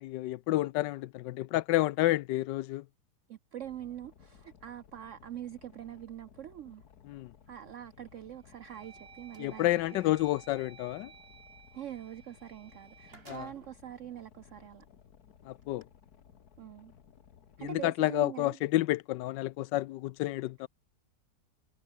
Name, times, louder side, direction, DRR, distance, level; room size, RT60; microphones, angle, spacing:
voice 1, 0.0-2.8 7.1-7.3 9.4-11.1 13.3-13.5 15.5-15.8 17.6-20.7, left 16 dB, 80° left, 1.2 m, -30 dB
voice 2, 3.3-6.8 7.5-9.7 11.7-14.8 16.6-16.9 17.6-18.6, right 11 dB, 75° right, 0.7 m, -44 dB
Boat Water vehicle, 3.6-17.9, left 8 dB, 60° left, 1.8 m, -59 dB
sound 1, 7.4-7.8 8.3-14.5, right 6 dB, 50° right, 1.9 m, -57 dB
sound 2, 8.7-9.5 12.4-12.5 12.8-13.9 14.6-14.7 15.6-15.8, right 2 dB, 30° right, 4.0 m, -57 dB
omnidirectional pair, 1.9 m